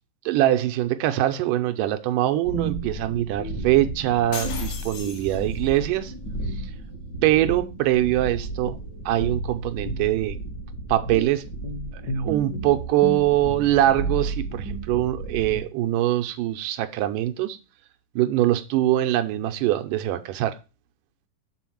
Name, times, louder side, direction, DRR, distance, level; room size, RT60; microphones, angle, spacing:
voice 1, 0.3-6.1 7.2-8.8 9.1-10.4 10.9-11.5 12.2-17.6 18.2-20.6, right 14 dB, 85° right, 2.2 m, -23 dB
sound 1, 2.4-15.6, right 2 dB, 40° left, 1.5 m, -32 dB
sound 2, 4.3-5.8, left 6 dB, 80° left, 2.8 m, -37 dB
7.1 x 4.1 x 6.0 m
omnidirectional pair, 3.8 m